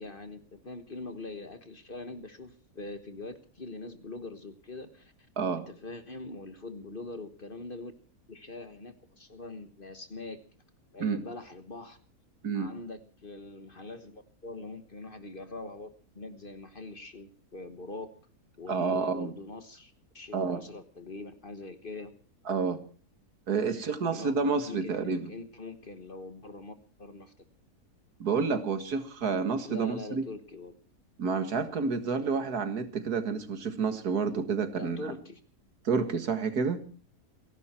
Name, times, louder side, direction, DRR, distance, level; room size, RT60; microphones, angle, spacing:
voice 1, 0.0-5.1 5.5-7.9 8.3-10.4 10.9-12.0 12.5-18.1 18.6-22.1 23.7-24.3 24.7-27.3 29.6-30.8 34.7-35.4, left 2 dB, 35° left, 9 dB, 1.5 m, -43 dB
voice 2, 18.7-19.3 20.3-20.6 22.5-22.8 23.5-25.3 28.2-30.2 31.2-35.2 35.8-36.8, right 5 dB, 75° right, 9 dB, 2.2 m, -29 dB
28.0 x 11.5 x 4.5 m, 0.39 s
omnidirectional pair, 1.7 m